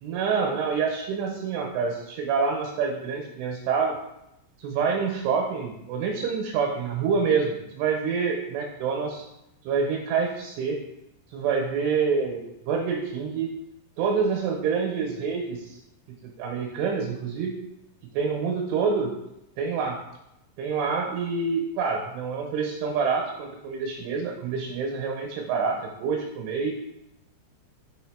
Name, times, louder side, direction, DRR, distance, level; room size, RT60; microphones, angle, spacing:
voice 1, 0.0-4.0 4.6-9.3 9.6-10.8 11.3-13.5 14.0-15.7 16.4-17.6 18.1-19.1 19.6-20.0 20.6-26.7, right 5 dB, 80° right, 1 dB, 3.1 m, -27 dB
7.6 x 3.7 x 5.0 m, 0.85 s
omnidirectional pair, 6.0 m